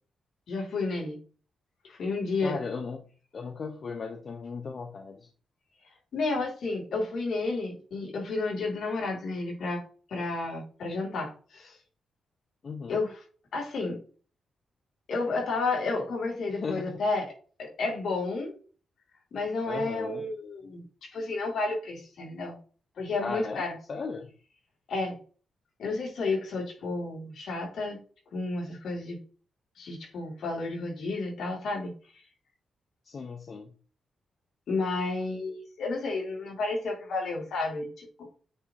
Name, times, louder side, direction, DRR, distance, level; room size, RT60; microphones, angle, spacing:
voice 1, 0.5-1.2 1.8-2.6 6.1-9.8 10.1-11.8 12.9-13.2 13.5-14.0 15.1-17.3 17.6-18.5 19.3-20.8 21.1-22.6 23.0-23.7 24.9-25.2 25.8-28.0 28.3-29.2 29.8-31.9 34.7-38.2, left 3 dB, 65° left, -2 dB, 3.7 m, -31 dB
voice 2, 2.4-3.0 3.3-5.3 12.6-13.0 16.6-17.0 19.7-20.2 23.2-23.6 23.9-24.3 33.0-33.7, left 4 dB, 40° left, 4 dB, 0.8 m, -36 dB
8.9 x 3.6 x 4.2 m, 0.39 s
wide cardioid pair, 140°, 0 cm